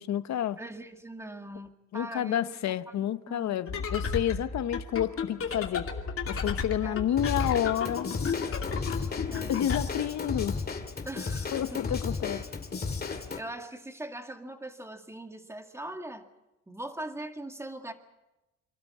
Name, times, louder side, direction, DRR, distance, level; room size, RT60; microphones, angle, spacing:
voice 1, 0.0-0.6 1.9-5.9 6.3-8.1 9.5-10.6 11.5-12.4, left 11 dB, 65° left, 0.9 m, -29 dB
voice 2, 0.6-3.6 6.8-7.0 9.3-9.6 11.1-11.8 13.1-16.3 16.7-17.9, right 1 dB, 10° right, 2.0 m, -41 dB
sound 1, 3.7-9.8, left 5 dB, 45° left, 2.5 m, -33 dB
Drum kit / Drum, 7.2-13.4, left 4 dB, 30° left, 2.2 m, -34 dB
27.5 x 12.5 x 8.4 m
cardioid pair, 90°, 30 cm